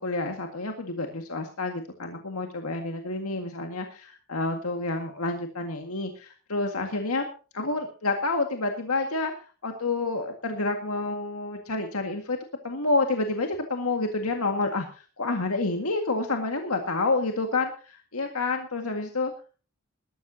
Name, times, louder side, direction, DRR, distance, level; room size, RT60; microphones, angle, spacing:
voice 1, 0.0-7.3 7.5-9.3 9.6-12.4 12.6-19.3, left 3 dB, 80° left, 4 dB, 1.9 m, -29 dB
20.0 x 13.0 x 2.8 m, 0.36 s
head